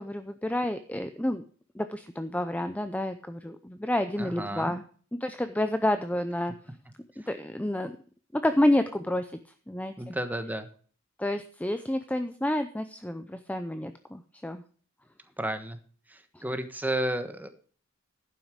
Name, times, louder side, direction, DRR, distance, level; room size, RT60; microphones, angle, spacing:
voice 1, 0.0-1.4 1.7-4.8 5.1-6.5 7.2-7.9 8.3-9.3 9.7-10.2 11.2-14.6 16.3-16.4, left 1 dB, 5° left, 9 dB, 0.6 m, -29 dB
voice 2, 4.2-4.7 10.0-10.7 15.4-15.8 16.1-17.5, right 1 dB, 10° right, 8 dB, 1.3 m, -32 dB
11.5 x 9.2 x 5.0 m, 0.44 s
head